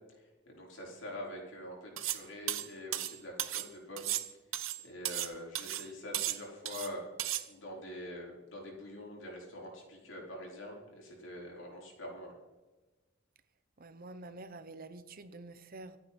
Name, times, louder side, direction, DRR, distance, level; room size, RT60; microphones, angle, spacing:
voice 1, 0.0-4.1 4.8-7.0 7.5-12.4, left 1 dB, 65° left, 5.1 m, -45 dB
sound 1, 2.0-2.2 2.5-3.7 4.0-5.3 5.6-5.9 6.1-6.9 7.2-7.4, right 13 dB, 80° right, 1.0 m, -35 dB
voice 2, 13.8-16.0, right 2 dB, 45° right, 0.9 m, -48 dB
25.5 x 9.0 x 4.4 m
head